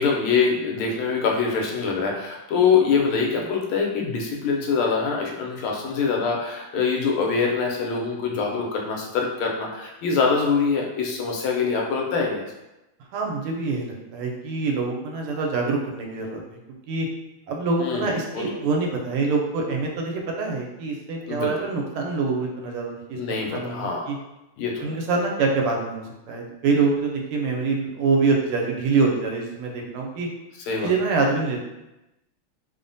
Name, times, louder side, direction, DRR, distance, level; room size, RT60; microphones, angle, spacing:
voice 1, 0.0-12.4 17.8-18.1 18.3-18.4 21.3-21.5 23.1-24.0 24.6-24.9 30.7-30.9, left 5 dB, 80° left, 0 dB, 1.4 m, -24 dB
voice 2, 13.1-16.4 16.9-17.1 17.5-23.2 23.5-24.2 24.8-30.3 30.8-31.6, right 4 dB, 90° right, 1 dB, 1.5 m, -25 dB
3.5 x 2.1 x 2.5 m, 0.96 s
omnidirectional pair, 2.4 m